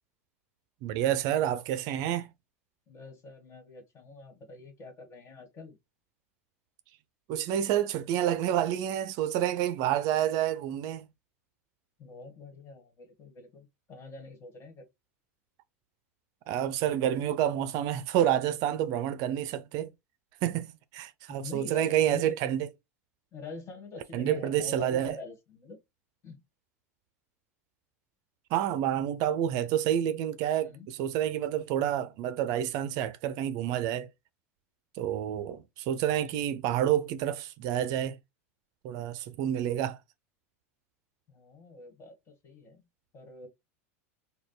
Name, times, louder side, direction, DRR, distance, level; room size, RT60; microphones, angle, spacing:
voice 1, 0.8-2.3 7.3-11.1 16.5-19.9 20.4-22.7 24.1-25.2 28.5-34.1 35.0-38.2 38.8-40.0, right 11 dB, 55° right, 0.4 m, -29 dB
voice 2, 2.9-5.8 12.0-14.8 21.3-22.6 23.3-25.8 26.2-26.4 30.6-30.9 41.3-42.8 43.1-43.5, left 3 dB, 35° left, 1.6 m, -45 dB
5.1 x 2.2 x 2.3 m
hypercardioid pair, 95°, 8 cm